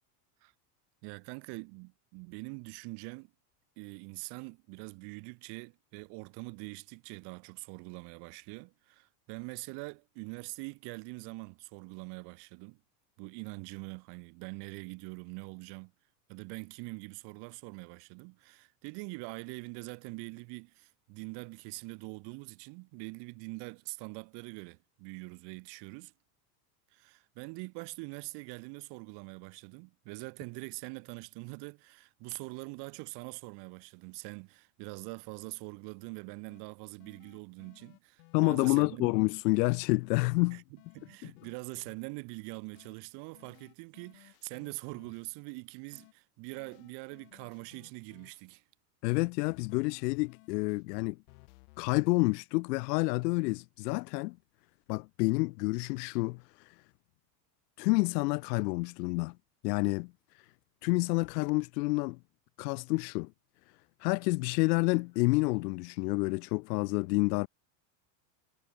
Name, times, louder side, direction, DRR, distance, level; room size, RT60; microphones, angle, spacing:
voice 1, 1.0-3.3 3.8-12.8 13.2-15.9 16.3-26.1 26.9-39.2 40.5-40.6 40.9-48.6, right 31 dB, 55° right, 3.1 m, -44 dB
sound 1, 36.5-36.6 37.0-38.8 39.6-39.8 40.2-42.0 42.7-42.9 43.3-45.3 45.9-46.1 46.5-48.4 49.1-52.1, left 31 dB, 60° left, 2.3 m, -59 dB
voice 2, 38.3-40.6 41.2-41.3 49.0-51.2 51.8-54.4 54.9-56.7 57.8-59.3 59.6-60.1 60.8-62.2 62.6-63.3 64.0-67.5, left 25 dB, 80° left, 0.6 m, -29 dB
supercardioid pair, 145°, 49 cm